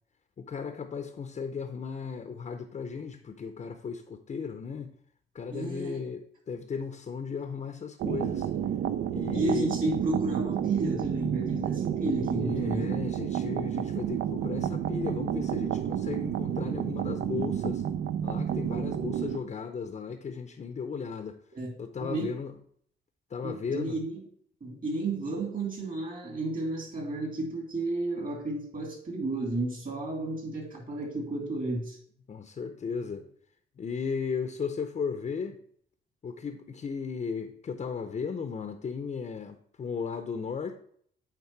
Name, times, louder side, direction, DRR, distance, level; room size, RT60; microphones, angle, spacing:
voice 1, 0.4-4.9 5.3-8.5 9.1-9.7 12.3-17.8 18.2-21.4 21.8-22.5 23.3-24.0 32.3-33.3 33.8-35.6 36.2-40.8, left 5 dB, 35° left, 8 dB, 0.6 m, -35 dB
voice 2, 5.5-6.1 9.2-13.1 21.5-21.7 22.0-22.3 23.4-24.2 24.6-32.0, right 2 dB, 40° right, 0 dB, 2.7 m, -32 dB
sound 1, 8.0-19.4, right 9 dB, 55° right, 0.4 m, -30 dB
8.7 x 3.5 x 4.6 m, 0.64 s
cardioid pair, 90°, 20 cm